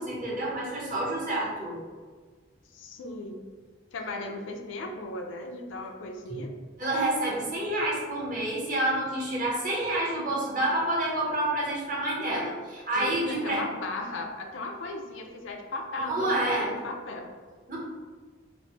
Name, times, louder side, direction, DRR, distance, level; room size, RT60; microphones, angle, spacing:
voice 1, 0.0-1.8 6.3-6.4 6.8-13.6 16.0-16.7 17.7-17.8, right 1 dB, 45° right, -5 dB, 0.8 m, -28 dB
voice 2, 2.7-3.4 3.9-6.5 12.9-17.3, left 2 dB, 80° left, 3 dB, 0.4 m, -37 dB
3.0 x 2.0 x 2.8 m, 1.5 s
head